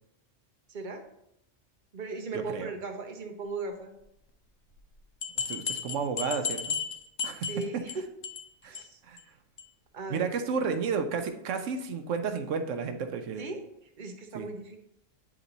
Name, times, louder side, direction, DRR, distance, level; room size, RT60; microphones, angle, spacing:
voice 1, 0.7-1.0 1.9-4.0 7.4-7.9 8.7-9.0 9.9-10.3 13.4-13.6 14.0-14.8, right 3 dB, 45° right, 4 dB, 0.8 m, -37 dB
sound 1, 4.8-4.9 5.2-7.9 8.2-8.5 8.7-8.8 9.2-9.3 9.6-9.7, left 6 dB, 70° left, 0.9 m, -34 dB
voice 2, 5.5-6.8 7.2-7.8 8.6-8.8 9.1-9.2 10.1-13.4 14.3-14.5, right 5 dB, 80° right, 7 dB, 1.0 m, -32 dB
8.4 x 3.0 x 3.9 m, 0.78 s
omnidirectional pair, 1.3 m